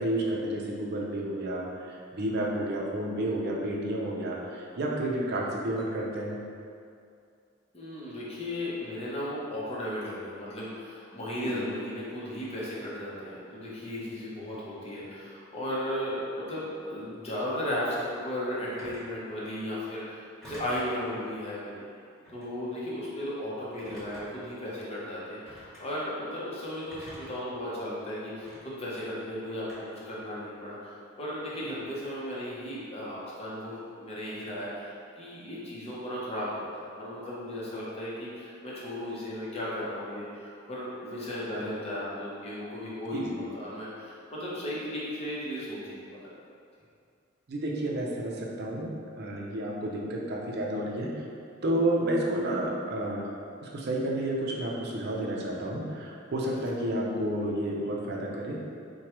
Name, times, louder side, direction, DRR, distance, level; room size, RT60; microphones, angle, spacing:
voice 1, 0.0-6.4 11.4-11.6 43.1-43.4 47.5-48.9 49.2-51.2 51.6-53.2 53.6-58.6, right 1 dB, 55° right, -2 dB, 0.5 m, -31 dB
voice 2, 7.7-21.8 22.3-46.3, left 1 dB, 30° left, -7 dB, 0.8 m, -35 dB
Telephone, 18.8-19.1 20.4-20.9 22.2-22.5 23.7-24.5 25.5-25.8 26.9-27.5 28.4-28.6 29.7-30.1, equal, 5° left, 1.2 m, -47 dB
4.4 x 2.2 x 3.0 m, 2.4 s
head